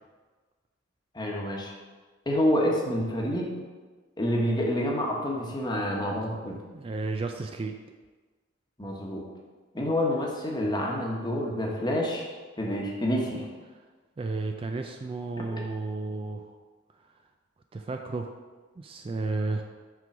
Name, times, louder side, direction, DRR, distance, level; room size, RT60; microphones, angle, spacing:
voice 1, 1.1-1.7 2.3-3.5 4.2-6.6 8.8-9.2 9.7-12.2 12.6-13.5 15.5-15.6, equal, 25° left, -2 dB, 1.1 m, -28 dB
voice 2, 6.7-7.8 14.2-16.5 17.7-18.3 18.8-19.6, right 3 dB, 30° right, 4 dB, 0.3 m, -32 dB
5.9 x 3.8 x 5.9 m, 1.4 s
head